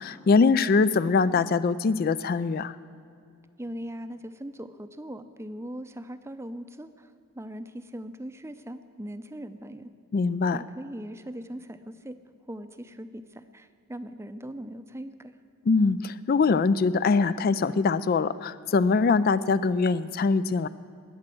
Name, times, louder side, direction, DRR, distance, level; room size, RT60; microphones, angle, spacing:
voice 1, 0.0-2.8 10.1-10.6 15.7-20.7, left 4 dB, 40° left, 15 dB, 0.3 m, -23 dB
voice 2, 3.6-9.9 10.5-12.2 12.5-15.4, equal, 10° right, 10 dB, 0.5 m, -40 dB
21.0 x 8.7 x 7.7 m, 2.5 s
head